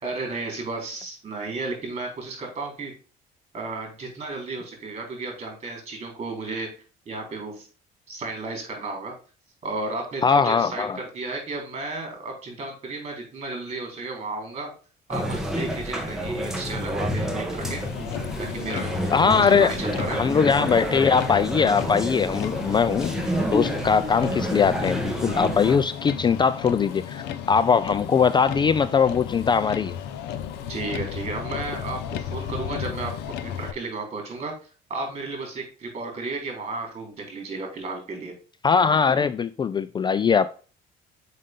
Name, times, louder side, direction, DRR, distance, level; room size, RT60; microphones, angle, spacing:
voice 1, 0.0-2.9 3.5-6.8 7.1-7.7 8.1-9.1 9.6-14.7 15.1-17.9 18.4-18.9 19.4-20.2 30.7-33.2 33.4-34.6 34.9-38.3, right 3 dB, 40° right, 4.1 m, -33 dB
voice 2, 10.2-11.0 19.1-19.7 20.1-23.2 23.5-29.9 38.6-40.5, left 6 dB, 25° left, 0.4 m, -21 dB
sound 1, 15.1-25.8, equal, 5° right, 1.6 m, -29 dB
Motor vehicle (road), 17.6-33.7, left 9 dB, 90° left, 0.8 m, -34 dB
6.4 x 5.6 x 3.6 m
cardioid pair, 110°, 17 cm